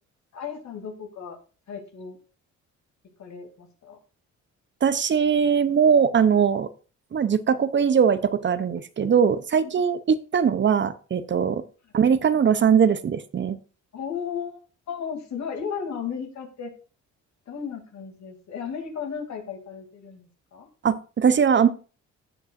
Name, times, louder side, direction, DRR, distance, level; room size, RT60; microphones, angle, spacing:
voice 1, 0.3-1.4 1.7-2.2 3.2-4.0 9.6-9.7 13.9-14.6 14.9-16.7 17.5-20.7, left 7 dB, 65° left, 3 dB, 2.6 m, -35 dB
voice 2, 4.8-6.7 7.1-11.6 11.9-13.6 20.8-21.7, right 7 dB, 40° right, 13 dB, 0.6 m, -21 dB
16.0 x 5.4 x 2.5 m, 0.36 s
cardioid pair, 90°, 30 cm